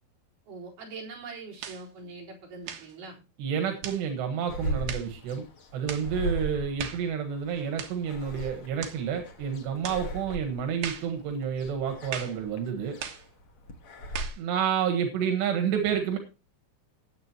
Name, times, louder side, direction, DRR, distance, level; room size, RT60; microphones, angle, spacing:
voice 1, 0.5-3.2, right 4 dB, 50° right, -3 dB, 5.6 m, -42 dB
sound 1, 1.6-1.9 2.6-2.9 3.8-4.1 4.9-5.1 5.9-6.1 6.8-7.1 7.8-8.0 8.8-9.0 9.8-10.1 10.8-11.1 12.1-12.4 13.0-13.3 14.1-14.4, right 8 dB, 70° right, 3.2 m, -37 dB
voice 2, 3.4-5.4 5.7-13.0 14.4-16.2, right 7 dB, 85° right, 5 dB, 3.7 m, -29 dB
sound 2, 4.5-14.3, right 1 dB, 80° left, 1.2 m, -38 dB
19.0 x 8.2 x 3.0 m, 0.29 s
omnidirectional pair, 4.8 m